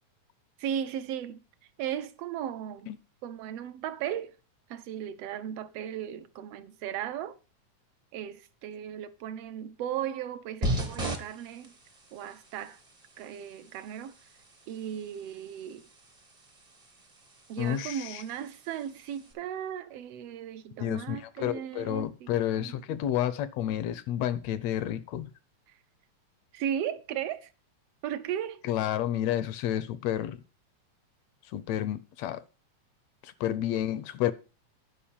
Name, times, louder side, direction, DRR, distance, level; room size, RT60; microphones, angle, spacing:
voice 1, 0.6-1.4 1.8-2.9 3.2-4.4 4.7-7.3 8.1-11.7 12.1-12.8 13.2-14.1 14.7-15.9 17.5-22.3 22.6-22.8 26.5-27.5 28.0-28.6, right 9 dB, 75° right, 1.5 m, -36 dB
sound 1, 10.6-19.3, right 1 dB, 35° right, 0.6 m, -39 dB
voice 2, 17.6-18.2 20.8-25.3 28.6-30.4 31.4-32.4 33.2-34.3, left 11 dB, 75° left, 1.7 m, -30 dB
10.0 x 5.2 x 7.0 m
omnidirectional pair, 3.3 m